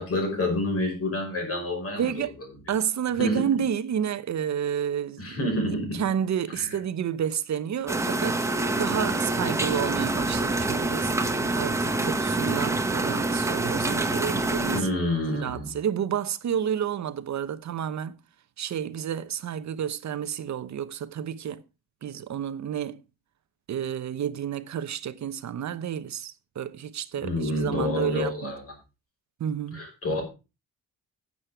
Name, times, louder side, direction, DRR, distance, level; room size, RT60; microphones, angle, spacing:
voice 1, 0.0-2.1 3.2-3.6 5.2-6.0 6.6-6.8 14.7-15.7 27.2-28.8 29.7-30.2, left 1 dB, 40° left, 5.4 m, -28 dB
voice 2, 1.9-2.3 2.7-5.4 5.9-8.5 8.8-11.1 11.6-14.9 15.3-18.2 18.6-21.6 22.0-23.0 23.7-28.5 29.4-29.8, right 9 dB, 55° right, 0.9 m, -30 dB
sound 1, 7.9-14.8, right 2 dB, 10° right, 0.9 m, -26 dB
10.5 x 8.6 x 4.8 m
wide cardioid pair, 155°, 34 cm